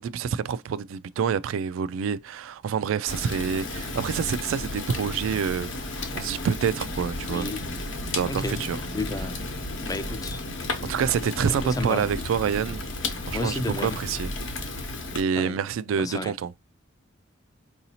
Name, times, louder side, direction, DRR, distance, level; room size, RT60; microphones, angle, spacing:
voice 1, 0.0-7.5 8.1-8.8 10.9-12.8 13.2-14.3 15.1-16.5, right 7 dB, 90° right, 0.3 m, -27 dB
Fire, 3.1-15.2, left 2 dB, 70° left, 0.8 m, -33 dB
voice 2, 7.3-7.6 8.3-8.6 8.9-9.4 9.9-10.4 11.6-12.1 13.3-14.0 15.4-15.6 16.0-16.3, left 2 dB, 20° left, 0.3 m, -31 dB
4.7 x 2.7 x 2.8 m
head